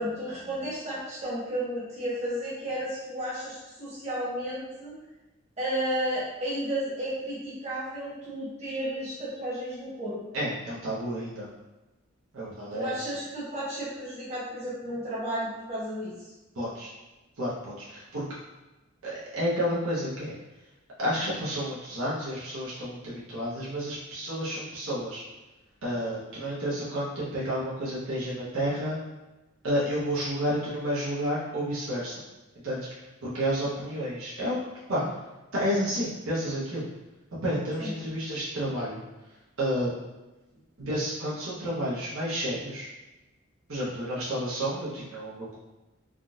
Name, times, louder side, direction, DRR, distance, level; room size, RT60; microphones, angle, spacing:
voice 1, 0.0-4.9 5.6-10.2 12.7-16.3 37.8-37.9, right 1 dB, 30° right, -10 dB, 1.2 m, -33 dB
voice 2, 10.3-11.5 12.3-13.1 16.5-16.9 17.4-18.3 19.0-20.3 21.0-25.2 25.8-29.0 29.6-32.2 32.6-32.9 33.2-35.1 35.5-36.9 37.4-39.0 39.6-39.9 40.8-42.9 43.7-45.6, equal, 75° right, -8 dB, 0.8 m, -30 dB
3.6 x 2.3 x 2.6 m, 1.1 s
head